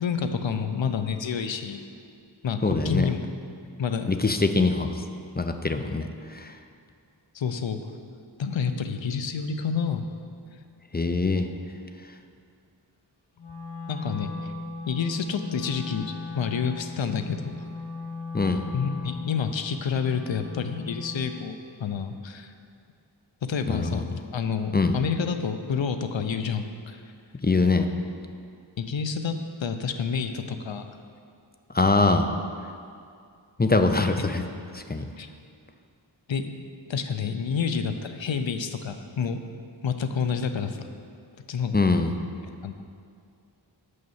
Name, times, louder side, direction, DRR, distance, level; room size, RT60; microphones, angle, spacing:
voice 1, 0.0-1.8 2.4-3.2 3.8-4.1 7.3-7.8 8.4-10.1 13.9-14.5 14.9-17.5 18.7-22.5 23.5-24.1 24.3-27.0 28.8-29.3 29.6-31.0 35.2-35.3 36.3-36.6 36.9-39.4 39.8-40.8 41.5-41.8 42.6-42.7, left 6 dB, 75° left, 8 dB, 0.6 m, -29 dB
voice 2, 2.6-3.1 4.1-5.0 5.4-6.5 10.9-11.5 18.3-18.7 23.7-24.0 24.7-25.0 27.4-27.9 31.7-32.3 33.6-34.4 34.7-35.1 41.7-42.2, left 3 dB, 20° left, 7 dB, 0.5 m, -23 dB
Wind instrument woodwind instrument, 13.4-21.4, left 3 dB, 60° left, 2.0 m, -37 dB
6.6 x 5.3 x 7.2 m, 2.3 s
wide cardioid pair, 45°, 46 cm